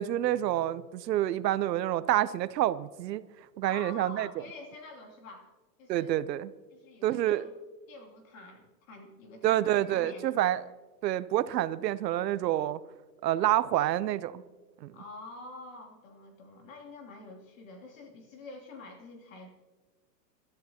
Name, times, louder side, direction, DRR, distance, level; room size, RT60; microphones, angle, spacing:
voice 1, 0.0-3.2 3.6-4.3 5.9-6.5 7.0-7.5 9.4-10.6 11.0-12.8 13.2-14.4 14.8-14.9, right 13 dB, 80° right, 0.7 m, -28 dB
voice 2, 3.6-5.5 5.8-6.2 6.7-7.5 7.9-10.5 13.4-13.7 14.9-19.5, left 3 dB, 50° left, 3.0 m, -47 dB
29.0 x 13.0 x 2.9 m
supercardioid pair, 180°, 49 cm